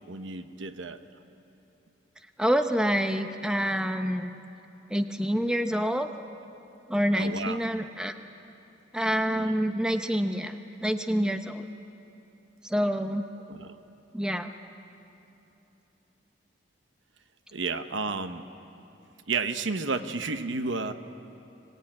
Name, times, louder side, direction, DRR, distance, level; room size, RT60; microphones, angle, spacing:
voice 1, 0.1-1.0 7.2-7.6 9.3-9.5 13.5-13.7 17.5-18.5 19.3-20.9, right 4 dB, 85° right, 9 dB, 1.0 m, -31 dB
voice 2, 2.4-4.3 4.9-6.1 6.9-8.1 8.9-11.7 12.6-13.3 14.1-14.5, equal, 5° right, 7 dB, 0.7 m, -27 dB
24.5 x 18.0 x 8.9 m, 3.0 s
head